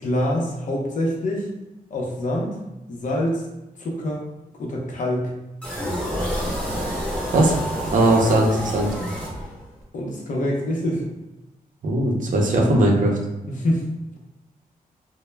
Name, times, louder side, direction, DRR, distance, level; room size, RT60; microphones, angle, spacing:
voice 1, 0.0-1.5 1.9-2.6 2.9-3.4 3.8-4.3 4.6-5.3 9.9-11.1 13.5-13.8, left 1 dB, 60° left, -2 dB, 0.6 m, -25 dB
sound 1, 5.6-9.8, equal, 10° left, 0.7 m, -28 dB
voice 2, 7.9-8.9 11.8-13.2, right 1 dB, 60° right, 0 dB, 0.5 m, -19 dB
2.1 x 2.0 x 3.1 m, 1.0 s
wide cardioid pair, 160°, 15 cm